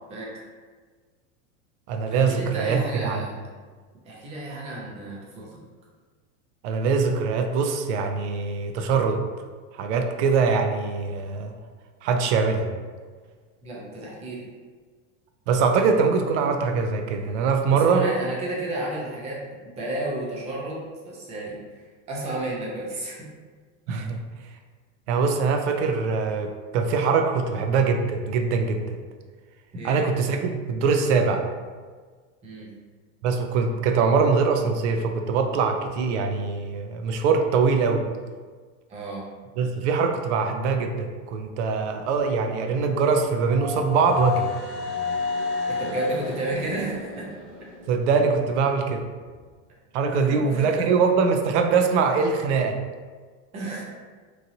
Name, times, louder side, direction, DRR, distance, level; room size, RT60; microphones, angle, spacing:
voice 1, 0.1-0.4 2.1-3.4 4.0-5.5 13.6-14.5 17.7-21.6 22.1-23.3 29.7-30.1 32.4-32.7 38.9-39.3 45.7-47.3 50.1-50.9 53.5-53.8, right 1 dB, 20° right, -4 dB, 0.5 m, -32 dB
voice 2, 1.9-3.2 6.6-9.2 9.7-11.5 12.0-12.7 15.5-18.0 23.9-24.2 25.1-28.9 29.8-31.4 33.2-38.0 39.6-44.5 47.9-49.0 49.9-52.8, right 5 dB, 65° right, 5 dB, 0.5 m, -23 dB
sound 1, 42.6-48.5, left 5 dB, 45° right, 0.8 m, -31 dB
3.0 x 2.6 x 2.7 m, 1.5 s
supercardioid pair, 155°, 37 cm